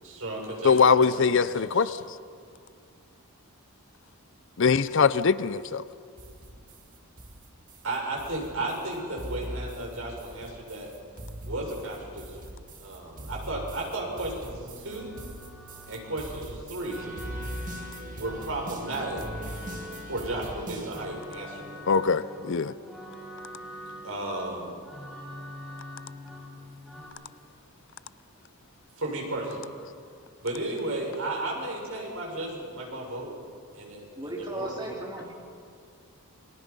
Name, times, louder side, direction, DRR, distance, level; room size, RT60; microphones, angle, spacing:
voice 1, 0.0-1.1 1.4-1.9 7.8-10.9 11.4-12.5 12.8-15.1 15.9-17.1 18.2-19.2 20.1-21.9 24.0-24.7 29.0-29.7 30.4-33.3 33.7-34.9, right 2 dB, 65° right, -1 dB, 6.3 m, -34 dB
voice 2, 0.6-2.0 4.6-5.8 21.9-22.7, left 5 dB, 55° left, 15 dB, 0.5 m, -22 dB
sound 1, 6.2-21.1, right 1 dB, 35° right, 2.0 m, -41 dB
sound 2, 14.5-27.1, left 1 dB, ahead, 4.7 m, -44 dB
voice 3, 34.2-35.3, right 1 dB, 20° right, -3 dB, 3.9 m, -36 dB
29.0 x 23.0 x 5.4 m, 2.3 s
head